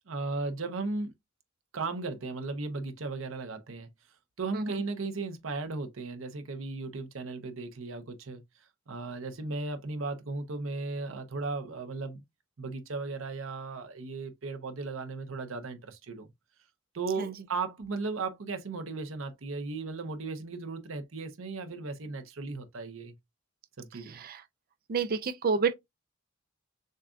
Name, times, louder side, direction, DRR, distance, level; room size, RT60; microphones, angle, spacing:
voice 1, 0.1-1.1 1.7-3.9 4.4-8.4 8.9-12.2 12.6-16.3 16.9-23.1 23.8-24.2, right 3 dB, 80° right, 0.8 m, -36 dB
voice 2, 24.0-24.4 24.9-25.7, right 5 dB, 45° right, 0.4 m, -29 dB
6.4 x 2.4 x 2.5 m
head